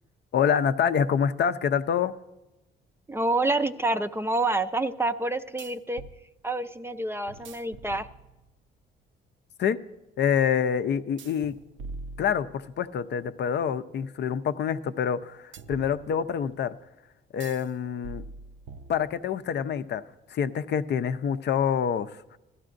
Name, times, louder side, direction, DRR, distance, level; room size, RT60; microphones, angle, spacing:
voice 1, 0.3-2.1 9.6-9.8 10.2-11.5 12.2-16.8 17.3-18.2 18.9-20.0 20.3-22.4, left 8 dB, 60° left, 11 dB, 0.6 m, -26 dB
voice 2, 3.1-6.0 6.4-8.1, right 2 dB, 10° right, 9 dB, 0.5 m, -27 dB
sound 1, 3.2-3.3 5.6-6.2 7.3-8.6 11.2-12.9 15.5-16.5 17.4-17.7 18.0-19.4, right 3 dB, 70° right, 0.6 m, -44 dB
16.5 x 12.5 x 2.6 m, 0.98 s
cardioid pair, 90°, 20 cm